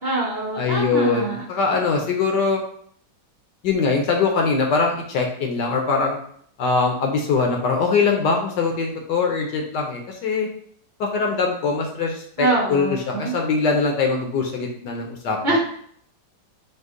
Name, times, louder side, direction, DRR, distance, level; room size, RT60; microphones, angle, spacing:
voice 1, 0.0-1.4 12.4-13.3 15.4-15.6, right 2 dB, 30° right, -7 dB, 1.0 m, -24 dB
voice 2, 0.6-2.6 3.6-6.2 6.6-10.5 11.0-15.4, left 4 dB, 70° left, 1 dB, 1.2 m, -22 dB
5.3 x 2.1 x 3.7 m, 0.63 s
omnidirectional pair, 2.1 m